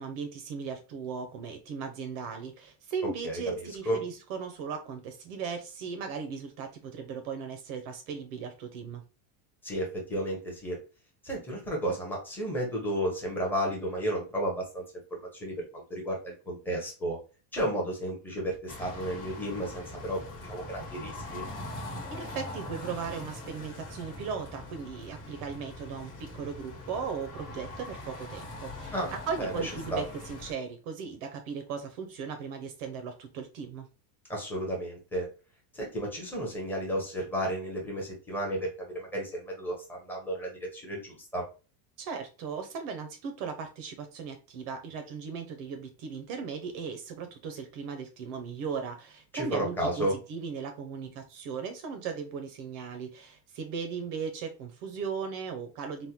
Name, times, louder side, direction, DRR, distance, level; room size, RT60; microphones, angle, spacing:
voice 1, 0.0-9.0 22.1-33.9 42.0-56.1, right 6 dB, 45° right, 0.5 m, -37 dB
voice 2, 9.6-10.8 11.2-14.8 15.2-17.2 17.5-21.4 28.9-29.1 29.4-30.0 34.3-35.3 35.7-41.4 49.3-50.1, right 1 dB, 5° left, 0.6 m, -33 dB
sound 1, 18.7-30.5, left 2 dB, 65° left, 1.2 m, -42 dB
3.4 x 2.1 x 2.7 m
cardioid pair, 175°, 47 cm